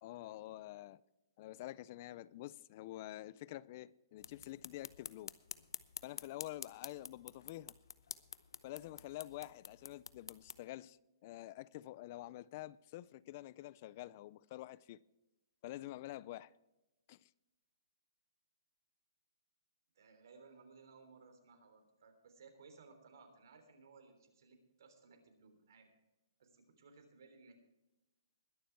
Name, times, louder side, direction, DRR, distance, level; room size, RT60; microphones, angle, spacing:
voice 1, 0.0-1.0 1.4-5.3 6.0-7.7 8.6-15.0 15.6-16.5 17.1-17.3, left 15 dB, 30° left, 0.4 m, -48 dB
sound 1, 4.2-10.6, left 6 dB, 80° left, 0.7 m, -49 dB
voice 2, 19.9-25.9 26.4-27.5, right 4 dB, 60° right, 3.4 m, -61 dB
21.0 x 7.2 x 4.6 m
hypercardioid pair, 160°, 2 cm